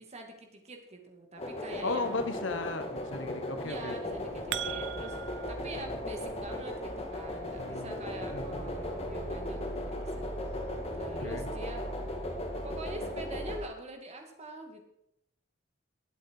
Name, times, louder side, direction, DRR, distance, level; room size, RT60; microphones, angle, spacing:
voice 1, 0.0-2.2 3.6-11.9 12.6-14.8, right 2 dB, 35° right, 3 dB, 2.3 m, -45 dB
sound 1, 1.4-13.6, left 1 dB, 35° left, 2.5 m, -38 dB
voice 2, 1.8-4.0 5.8-5.9 7.6-8.0 8.3-8.7 11.2-11.5, left 3 dB, 70° left, 9 dB, 1.1 m, -36 dB
sound 2, 4.0-5.5, right 10 dB, 65° right, 0.6 m, -38 dB
sound 3, 4.1-13.7, right 1 dB, 20° right, 0.8 m, -43 dB
20.5 x 7.8 x 4.7 m, 0.79 s
head